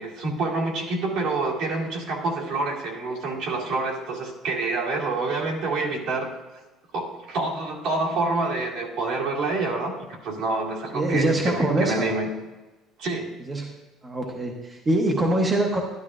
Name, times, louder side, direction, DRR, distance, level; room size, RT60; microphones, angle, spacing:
voice 1, 0.0-6.3 6.9-9.9 10.2-12.3 13.0-13.3, right 3 dB, 60° right, -3 dB, 2.1 m, -27 dB
voice 2, 10.9-12.1 13.5-13.7 14.0-15.8, right 1 dB, 15° right, 0 dB, 0.8 m, -23 dB
12.0 x 12.0 x 2.4 m, 1.2 s
cardioid pair, 180°, 0 cm